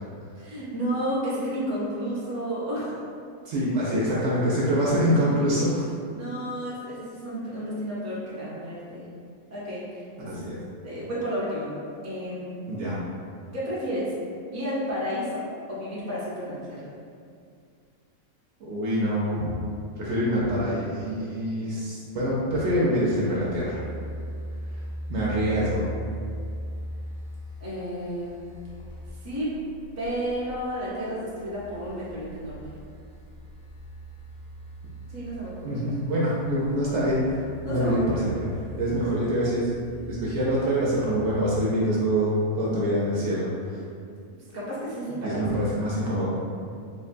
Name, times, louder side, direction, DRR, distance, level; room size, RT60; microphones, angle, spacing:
voice 1, 0.3-3.0 6.1-9.0 9.5-10.4 10.8-11.7 12.0-12.5 13.5-14.1 14.5-16.9 27.6-28.4 29.2-29.5 30.0-32.6 35.1-35.8 37.6-38.3 44.5-45.4, equal, 25° right, -9 dB, 0.4 m, -32 dB
voice 2, 3.5-5.8 10.3-10.6 12.7-13.0 18.6-19.5 20.0-23.8 25.1-25.9 35.6-38.5 38.8-39.7 40.1-43.8 45.1-46.3, equal, 65° right, -6 dB, 0.7 m, -25 dB
sound 1, 23.3-41.4, right 1 dB, 85° left, 0.5 m, -40 dB
3.7 x 2.2 x 2.5 m, 2.3 s
omnidirectional pair, 1.5 m